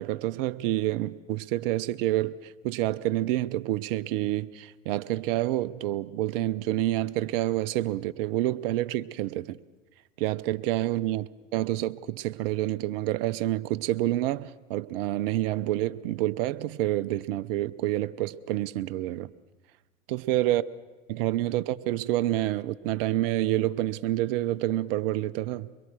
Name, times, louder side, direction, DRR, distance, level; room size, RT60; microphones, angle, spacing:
voice 1, 0.0-9.6 10.2-19.3 20.1-20.6 21.1-25.7, right 15 dB, 45° right, 14 dB, 0.8 m, -28 dB
23.0 x 22.5 x 6.3 m, 1.2 s
hypercardioid pair, 95°, 38 cm